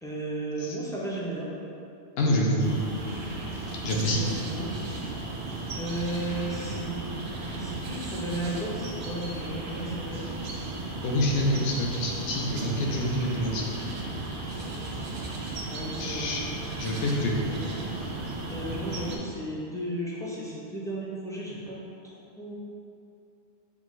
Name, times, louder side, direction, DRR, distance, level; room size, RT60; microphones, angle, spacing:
voice 1, 0.0-1.5 4.1-4.7 5.8-6.9 7.5-10.3 15.7-16.4 17.5-17.6 18.5-21.8 22.0-22.5, right 1 dB, 5° left, -7 dB, 0.3 m, -34 dB
voice 2, 2.2-2.8 3.8-4.2 4.9-5.0 11.0-13.9 16.0-16.5 16.8-17.4, left 1 dB, 70° left, -2 dB, 0.8 m, -27 dB
sound 1, 2.6-19.2, right 2 dB, 65° right, 0.7 m, -35 dB
5.8 x 2.2 x 3.1 m, 2.6 s
omnidirectional pair, 1.1 m